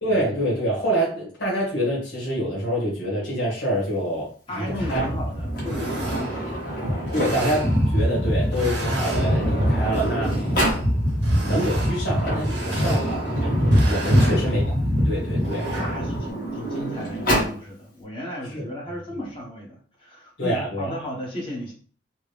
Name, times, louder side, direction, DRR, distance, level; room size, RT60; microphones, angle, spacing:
voice 1, 0.0-4.3 4.6-5.0 7.1-10.5 11.4-13.5 13.9-14.6 15.0-15.7 18.5-18.6 20.4-20.9, equal, 75° left, -5 dB, 1.4 m, -26 dB
voice 2, 4.5-6.5 12.7-12.9 14.0-14.5 15.2-15.4 15.8-21.7, equal, 30° left, -3 dB, 1.2 m, -35 dB
sound 1, 4.7-16.3, equal, 70° right, 1.1 m, -24 dB
Sliding door, 4.8-7.7 8.6-8.7 9.0-10.9 12.0-14.5 15.3-17.6, right 1 dB, 50° left, 1.4 m, -29 dB
3.6 x 2.2 x 3.3 m, 0.43 s
head